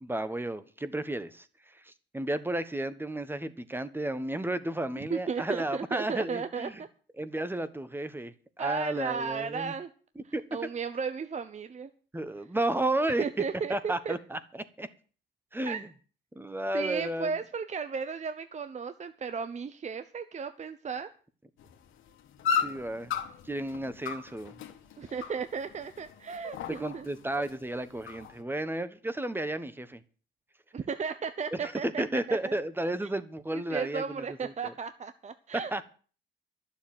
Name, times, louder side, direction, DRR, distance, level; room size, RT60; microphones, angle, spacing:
voice 1, 0.0-6.7 7.2-9.7 10.3-10.4 12.1-13.2 13.7-14.4 14.8-14.9 15.5-15.9 16.3-17.3 22.5-23.1 23.4-24.5 26.7-30.0 31.5-34.7 35.7-35.9, right 1 dB, 10° right, 13 dB, 1.2 m, -33 dB
voice 2, 5.0-6.9 8.6-9.9 10.2-11.9 13.2-14.1 15.6-15.8 16.7-21.1 25.0-27.1 30.7-32.6 33.5-35.9, right 6 dB, 35° right, 11 dB, 0.9 m, -35 dB
sound 1, 21.6-28.4, left 7 dB, 85° left, 1.9 m, -36 dB
11.5 x 7.3 x 8.9 m, 0.40 s
cardioid pair, 90°, 20 cm